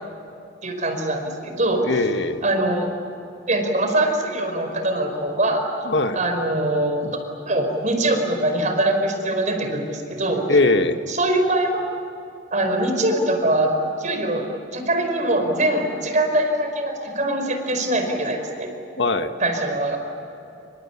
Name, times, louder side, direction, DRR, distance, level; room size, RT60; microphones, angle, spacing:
voice 1, 0.6-1.9 2.4-2.9 3.5-5.6 6.1-7.0 7.5-10.5 11.1-11.7 12.5-13.7 14.0-18.7 19.4-20.0, right 1 dB, 40° right, 5 dB, 5.0 m, -22 dB
voice 2, 1.8-2.4 5.8-6.2 7.0-7.1 10.5-11.0 19.0-19.3, left 2 dB, 70° left, 7 dB, 1.5 m, -20 dB
28.5 x 26.5 x 7.2 m, 2.9 s
head